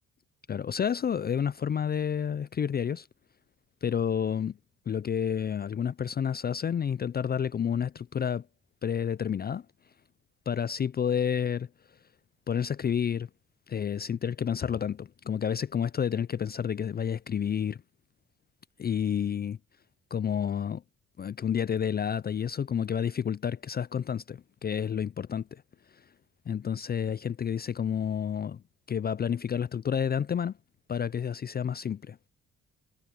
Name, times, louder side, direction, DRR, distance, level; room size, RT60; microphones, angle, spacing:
voice 1, 0.5-3.1 3.8-4.6 4.9-8.5 8.8-9.7 10.5-11.7 12.5-13.3 13.7-17.8 18.8-19.6 20.1-20.8 21.2-25.6 25.9-26.0 26.5-28.6 28.9-30.6 30.9-32.2, left 8 dB, 30° left, 0.5 m, -30 dB
supercardioid pair, 65°, 30 cm